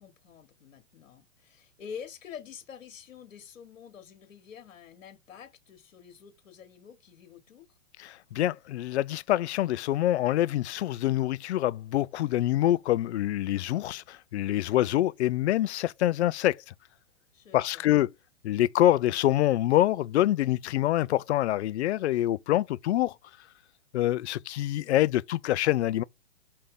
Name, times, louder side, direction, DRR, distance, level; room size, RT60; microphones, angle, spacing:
voice 1, 0.0-7.7 17.3-17.8, left 7 dB, 75° left, 1.3 m, -47 dB
voice 2, 8.0-16.7 17.5-18.1 18.4-23.2 23.9-26.0, left 14 dB, 60° left, 0.5 m, -26 dB
5.3 x 2.8 x 3.5 m
hypercardioid pair, 130°, 39 cm